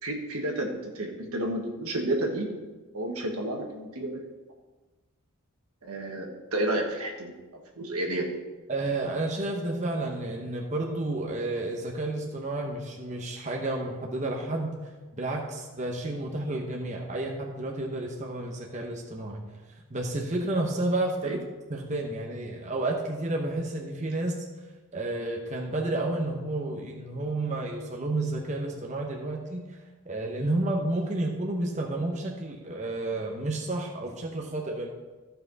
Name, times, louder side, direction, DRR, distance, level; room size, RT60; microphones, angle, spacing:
voice 1, 0.0-2.5 2.9-4.2 5.8-7.3 7.8-8.3 21.2-21.4, right 1 dB, 85° right, 2 dB, 1.5 m, -31 dB
voice 2, 8.7-14.8 15.1-19.5 19.9-21.4 21.7-24.5 24.9-34.9, right 2 dB, 30° right, 0 dB, 0.9 m, -31 dB
14.5 x 5.8 x 4.0 m, 1.2 s
head